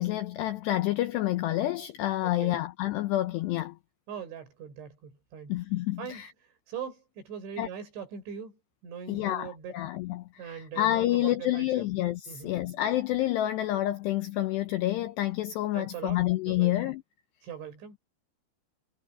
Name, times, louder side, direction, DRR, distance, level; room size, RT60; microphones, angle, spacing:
voice 1, 0.0-3.8 5.5-6.3 7.6-7.7 9.1-17.0, left 14 dB, 85° left, 2.4 m, -28 dB
voice 2, 2.2-2.6 4.1-5.6 6.0-6.2 6.7-9.7 10.4-11.9 12.3-12.6 15.7-17.0 17.4-18.0, right 7 dB, 65° right, 7.9 m, -41 dB
omnidirectional pair, 5.9 m